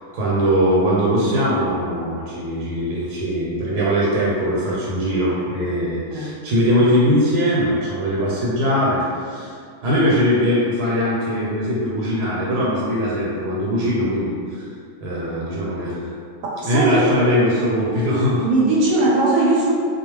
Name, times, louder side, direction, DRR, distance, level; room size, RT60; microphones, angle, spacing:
voice 1, 0.1-9.6 9.8-14.7 15.0-16.1 16.6-18.5, equal, 90° right, -7 dB, 1.1 m, -21 dB
voice 2, 16.6-17.1 18.4-19.7, right 2 dB, 70° right, -5 dB, 0.9 m, -18 dB
2.3 x 2.3 x 3.0 m, 2.2 s
omnidirectional pair, 1.6 m